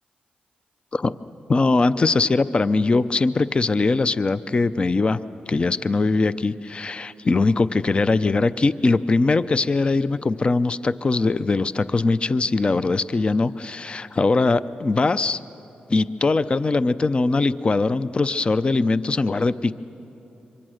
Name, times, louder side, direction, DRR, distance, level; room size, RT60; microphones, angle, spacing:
voice 1, 1.5-5.2 5.5-15.4 15.9-19.7, left 3 dB, 35° left, 14 dB, 0.6 m, -21 dB
27.0 x 24.0 x 6.5 m, 2.9 s
cardioid pair, 75°, 3 cm